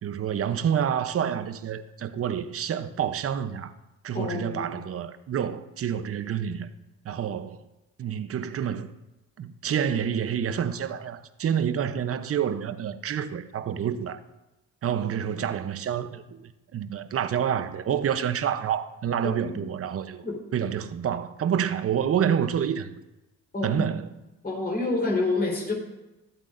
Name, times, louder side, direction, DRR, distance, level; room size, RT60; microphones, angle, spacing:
voice 1, 0.0-3.7 4.0-6.7 7.0-7.6 8.0-8.9 9.4-14.2 14.8-20.2 20.5-22.9 23.6-24.1, right 8 dB, 50° right, 0.7 m, -28 dB
voice 2, 4.1-4.8 19.4-19.5 20.2-20.4 23.5-23.9 24.4-25.7, left 3 dB, 30° left, 3.8 m, -28 dB
24.0 x 8.1 x 2.6 m
cardioid pair, 90°, 30 cm